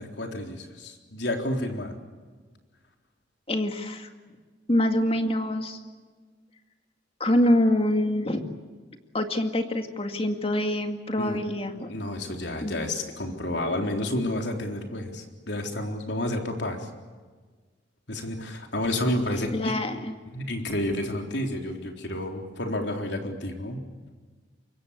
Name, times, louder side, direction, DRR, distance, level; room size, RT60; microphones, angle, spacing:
voice 1, 0.0-2.0 11.2-11.4 11.9-16.9 18.1-19.7 20.3-23.8, left 1 dB, 70° left, 3 dB, 3.8 m, -30 dB
voice 2, 3.5-4.1 4.7-5.8 7.2-8.4 9.1-11.9 12.6-12.8 19.2-20.1, left 1 dB, 30° left, 6 dB, 2.1 m, -25 dB
25.0 x 22.5 x 8.4 m, 1.4 s
head